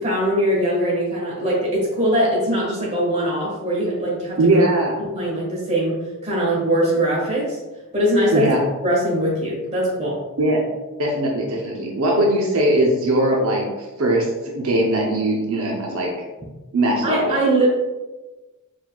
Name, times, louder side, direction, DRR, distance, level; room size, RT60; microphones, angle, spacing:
voice 1, 0.0-4.6 5.0-7.6 7.9-8.5 8.8-10.2 17.0-17.7, right 1 dB, 30° right, -5 dB, 1.4 m, -21 dB
voice 2, 4.4-5.0 8.3-8.6 10.4-10.6 11.0-16.1 16.7-17.4, right 1 dB, 80° right, -1 dB, 0.6 m, -20 dB
4.5 x 4.0 x 2.3 m, 1.1 s
head